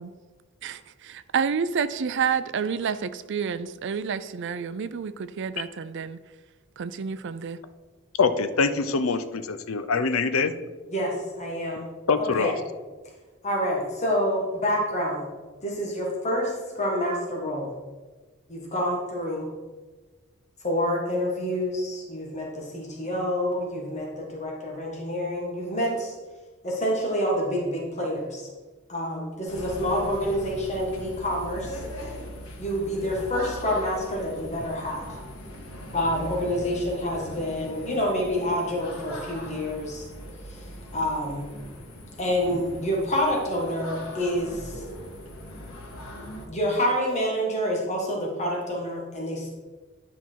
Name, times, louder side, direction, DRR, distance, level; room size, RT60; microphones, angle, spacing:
voice 1, 0.6-6.2 6.8-7.6, right 6 dB, 55° right, 14 dB, 0.4 m, -29 dB
voice 2, 8.2-10.5 12.1-12.5, left 4 dB, 70° left, 11 dB, 0.6 m, -24 dB
voice 3, 10.9-11.9 12.2-12.5 13.4-15.3 15.6-17.7 18.5-19.5 20.6-26.1 26.6-28.5 28.9-32.1 32.6-35.2 35.9-40.1 40.5-40.6 40.9-41.5 42.2-44.8 46.5-49.5, equal, 35° left, -1 dB, 1.7 m, -28 dB
sound 1, 29.5-46.5, equal, 90° left, 1.9 m, -40 dB
10.5 x 5.5 x 4.6 m, 1.3 s
head